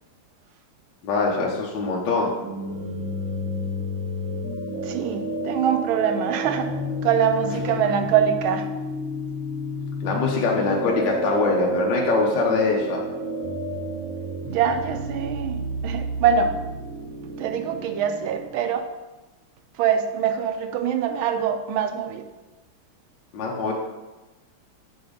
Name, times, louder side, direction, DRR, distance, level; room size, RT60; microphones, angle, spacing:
voice 1, 1.0-2.3 10.0-13.0 23.3-23.7, left 4 dB, 65° left, -2 dB, 1.5 m, -23 dB
sound 1, 2.4-18.4, right 1 dB, 10° right, 1.2 m, -30 dB
voice 2, 4.8-6.7 7.0-8.7 14.5-16.6 17.4-18.9 19.8-22.3, right 8 dB, 80° right, 7 dB, 1.5 m, -24 dB
7.0 x 4.4 x 5.0 m, 1.1 s
omnidirectional pair, 2.3 m